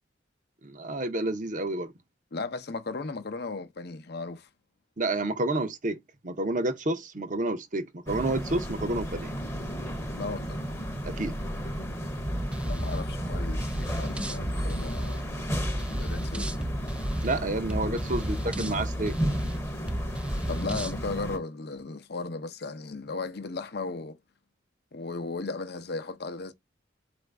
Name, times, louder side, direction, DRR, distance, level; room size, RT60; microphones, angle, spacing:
voice 1, 0.6-1.9 5.0-6.0 6.2-9.3 11.0-11.3 17.2-19.2, right 2 dB, 40° right, 0.7 m, -29 dB
voice 2, 2.3-4.5 10.1-10.6 12.6-15.3 15.8-16.7 20.4-24.2 24.9-26.5, left 3 dB, 50° left, 0.7 m, -36 dB
sound 1, 8.1-21.4, equal, 15° left, 0.8 m, -34 dB
sound 2, 12.3-21.0, equal, 5° right, 0.4 m, -33 dB
4.4 x 2.5 x 3.3 m
head